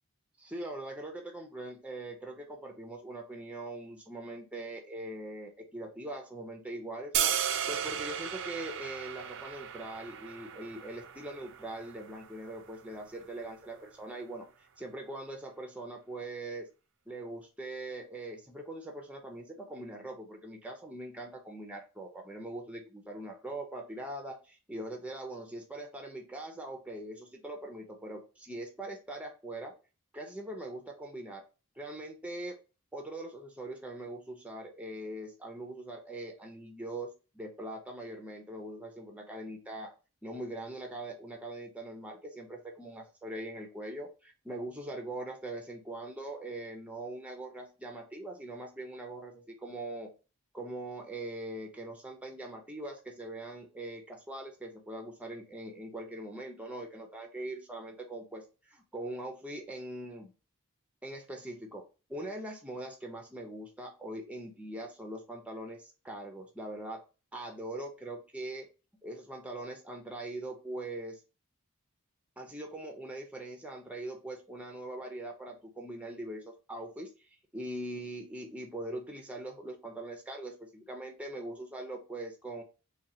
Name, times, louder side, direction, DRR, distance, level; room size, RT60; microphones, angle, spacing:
voice 1, 0.4-7.3 7.7-16.7 17.1-29.7 30.1-31.4 31.8-32.6 32.9-39.9 40.2-50.1 50.5-60.3 61.0-61.8 62.1-67.0 67.3-68.7 69.0-71.2 72.4-82.6, right 1 dB, 5° right, 2 dB, 0.6 m, -42 dB
sound 1, 7.1-13.2, right 9 dB, 55° right, 0.4 m, -35 dB
3.8 x 2.2 x 4.1 m, 0.32 s
head